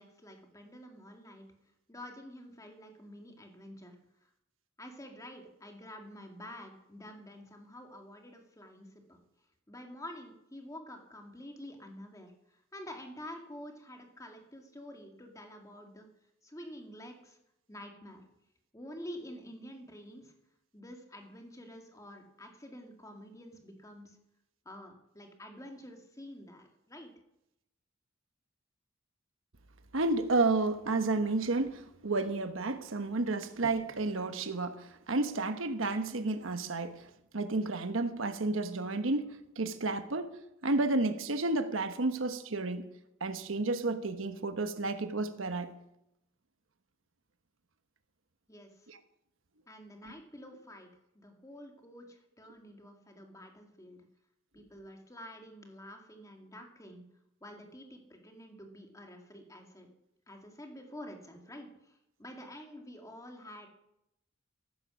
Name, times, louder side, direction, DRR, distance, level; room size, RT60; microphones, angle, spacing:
voice 1, 0.0-1.5 1.9-4.0 4.2-4.3 4.8-9.2 9.7-16.1 16.4-17.4 17.7-18.2 18.7-20.3 20.7-24.2 24.7-27.1 48.5-48.9 49.7-50.9 51.1-54.0 54.5-57.0 57.4-59.9 60.3-63.7, left 1 dB, 15° left, 3 dB, 2.1 m, -48 dB
voice 2, 29.9-37.0 37.3-40.3 40.6-42.8 43.2-45.7 48.9-49.0 50.0-50.1, right 3 dB, 85° right, 9 dB, 1.1 m, -31 dB
14.5 x 12.0 x 6.3 m, 0.84 s
head